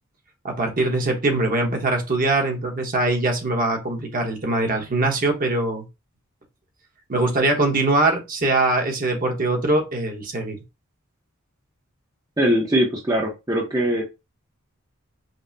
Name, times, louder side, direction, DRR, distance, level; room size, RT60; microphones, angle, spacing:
voice 1, 0.4-5.8 7.1-10.6, right 2 dB, 40° right, 2 dB, 0.9 m, -22 dB
voice 2, 12.4-14.0, equal, 15° right, -1 dB, 0.6 m, -21 dB
5.2 x 2.0 x 2.6 m, 0.25 s
head